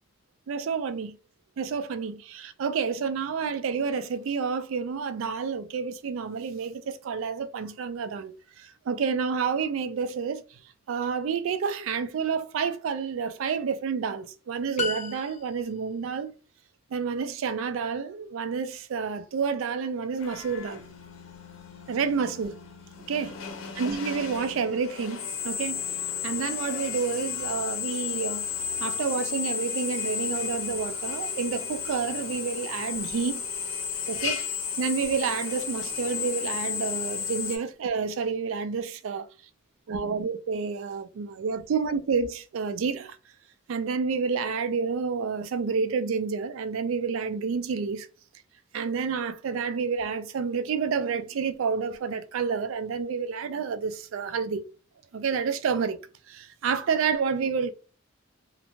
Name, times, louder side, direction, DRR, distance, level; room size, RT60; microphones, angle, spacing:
voice 1, 0.5-1.2 1.6-10.6 10.9-16.3 16.9-20.8 21.9-22.6 23.1-23.4 23.8-26.0 26.2-28.5 28.8-33.4 34.1-34.4 34.8-39.3 39.9-43.2 43.7-48.1 48.7-54.6 55.1-56.0 56.3-57.7, right 5 dB, 75° right, 0.3 m, -29 dB
sound 1, 14.8-15.9, left 3 dB, 35° left, 0.3 m, -33 dB
Drill, 20.2-37.6, left 7 dB, 75° left, 0.6 m, -33 dB
2.5 x 2.1 x 2.9 m
head